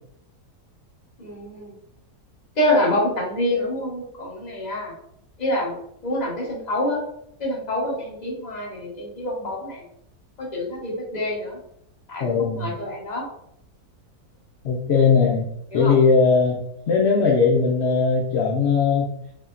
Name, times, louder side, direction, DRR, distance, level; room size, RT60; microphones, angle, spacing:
voice 1, 1.2-1.7 2.6-4.9 5.4-7.0 7.4-9.8 10.4-11.6 12.1-13.2 14.9-15.0 15.7-15.9, left 1 dB, 30° left, -3 dB, 1.0 m, -26 dB
voice 2, 12.2-12.7 14.6-15.5 15.7-16.6 16.9-19.1, left 5 dB, 65° left, -2 dB, 0.7 m, -19 dB
4.9 x 2.7 x 2.5 m, 0.72 s
omnidirectional pair, 1.7 m